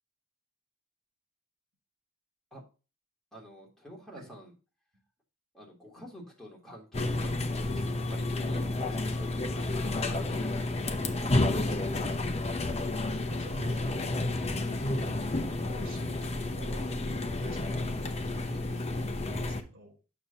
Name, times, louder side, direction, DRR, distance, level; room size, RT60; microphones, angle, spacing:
voice 1, 3.3-4.5 5.5-12.4, equal, ahead, -3 dB, 3.2 m, -48 dB
sound 1, 6.9-19.6, left 2 dB, 30° left, 0.9 m, -31 dB
voice 2, 13.0-14.4 15.5-20.0, right 2 dB, 45° right, 0 dB, 3.3 m, -52 dB
8.7 x 6.6 x 2.8 m, 0.32 s
head